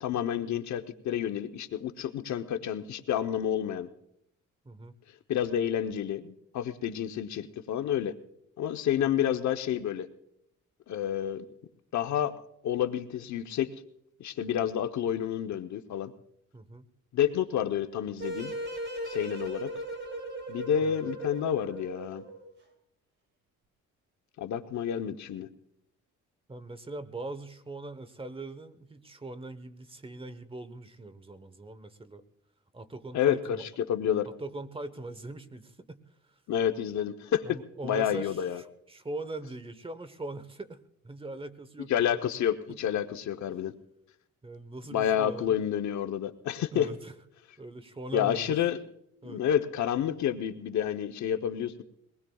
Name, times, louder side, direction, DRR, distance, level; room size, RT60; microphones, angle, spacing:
voice 1, 0.0-3.9 5.3-8.1 8.6-10.1 10.9-11.5 11.9-12.3 12.6-13.7 14.2-16.1 17.1-18.5 19.1-19.7 20.5-22.2 24.4-25.5 33.1-34.3 36.5-37.6 37.8-38.6 41.9-43.7 44.9-46.9 48.1-48.8 49.2-51.8, left 9 dB, 70° left, 8 dB, 0.9 m, -29 dB
voice 2, 16.5-16.9 20.8-20.9 26.5-32.2 32.7-33.6 34.2-36.0 37.4-42.2 42.7-42.8 44.4-45.6 46.7-47.1 47.6-48.5 49.2-49.4, right 2 dB, 20° right, 13 dB, 1.1 m, -41 dB
sound 1, 18.2-22.5, right 1 dB, 40° right, 2.8 m, -37 dB
23.0 x 19.5 x 2.3 m, 0.78 s
cardioid pair, 90°, 30 cm